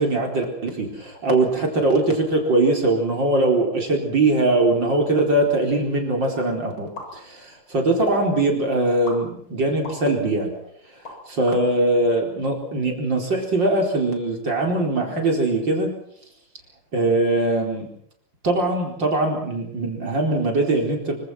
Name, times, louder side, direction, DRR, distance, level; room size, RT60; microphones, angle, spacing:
voice 1, 0.0-10.5 11.3-15.9 16.9-17.9 18.4-21.2, right 2 dB, 60° right, 1 dB, 5.0 m, -21 dB
sound 1, 6.9-7.6 8.0-8.3 9.0-10.0 10.5-11.6, equal, 75° left, 8.8 m, -34 dB
25.5 x 25.0 x 6.1 m, 0.66 s
omnidirectional pair, 2.3 m